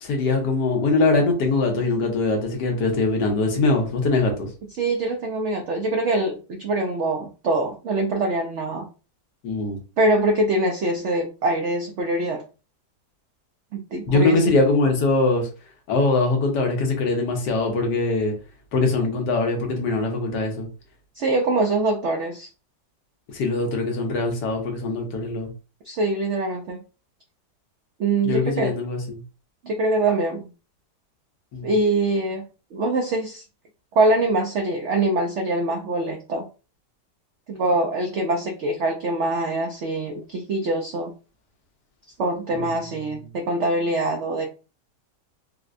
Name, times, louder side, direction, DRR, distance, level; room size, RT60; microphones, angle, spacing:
voice 1, 0.0-4.5 9.4-9.8 14.1-15.5 15.9-18.3 18.7-20.7 23.3-25.5 28.2-29.2 31.5-31.7 42.5-42.7, left 3 dB, 80° left, 3 dB, 1.5 m, -22 dB
voice 2, 4.8-8.9 10.0-12.4 13.7-14.4 21.1-22.5 25.8-26.8 28.0-28.8 29.6-30.5 31.6-32.4 32.7-33.4 33.9-36.5 37.5-41.1 42.2-44.5, right 2 dB, 80° right, 2 dB, 0.6 m, -23 dB
4.2 x 2.1 x 2.4 m, 0.33 s
omnidirectional pair, 1.8 m